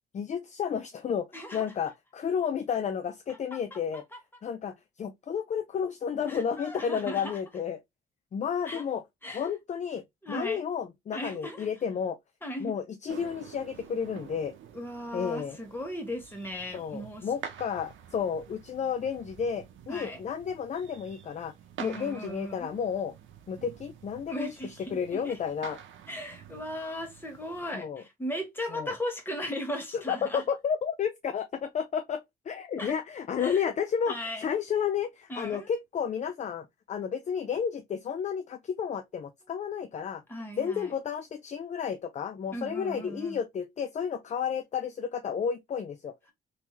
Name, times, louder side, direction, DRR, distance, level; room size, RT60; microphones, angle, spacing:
voice 1, 0.1-4.0 4.4-7.8 8.3-10.0 10.3-12.2 12.6-14.5 15.1-15.6 16.7-21.5 21.8-23.1 23.5-25.8 27.7-28.0 28.7-28.9 29.9-40.2 40.6-46.3, left 7 dB, 35° left, 0.4 m, -32 dB
voice 2, 1.3-1.6 3.5-4.2 6.3-7.4 8.6-8.8 9.2-9.5 10.2-10.6 11.1-11.7 12.4-12.7 14.7-17.3 19.9-20.2 21.8-22.7 24.3-25.4 26.1-30.4 32.8-32.9 33.4-33.7 34.1-34.5 35.3-35.7 40.3-40.9 42.5-43.4, equal, 10° left, 1.6 m, -37 dB
sound 1, 13.1-27.7, right 8 dB, 75° right, 0.7 m, -48 dB
3.4 x 2.9 x 2.9 m
cardioid pair, 90°, 20 cm